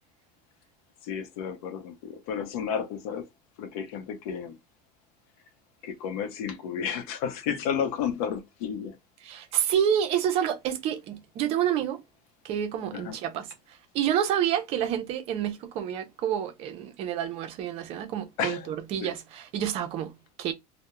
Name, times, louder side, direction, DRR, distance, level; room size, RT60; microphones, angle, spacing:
voice 1, 1.0-3.3 3.6-4.6 5.8-9.0 12.9-13.2 18.4-18.7 19.0-19.1, left 7 dB, 80° left, 0.7 m, -32 dB
voice 2, 9.2-12.0 12.4-13.5 13.9-20.5, right 9 dB, 35° right, 0.4 m, -28 dB
2.2 x 2.0 x 2.9 m
cardioid pair, 175°, 18 cm